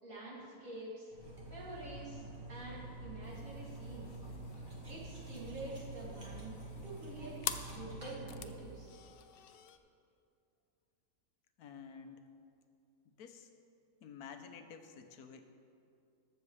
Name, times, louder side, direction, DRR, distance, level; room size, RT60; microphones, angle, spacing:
voice 1, 0.0-1.1 1.5-4.1 4.9-6.6 6.8-7.4 7.7-8.9, right 2 dB, 60° right, -7 dB, 3.0 m, -47 dB
Cutlery silverware, 1.1-8.8, right 2 dB, 35° right, 1.5 m, -47 dB
sound 1, 3.2-9.8, left 8 dB, 70° left, 0.5 m, -48 dB
voice 2, 11.6-12.2 13.2-13.5 14.0-15.5, left 6 dB, 90° left, 7 dB, 1.3 m, -51 dB
20.5 x 7.2 x 3.2 m, 2.5 s
omnidirectional pair, 1.6 m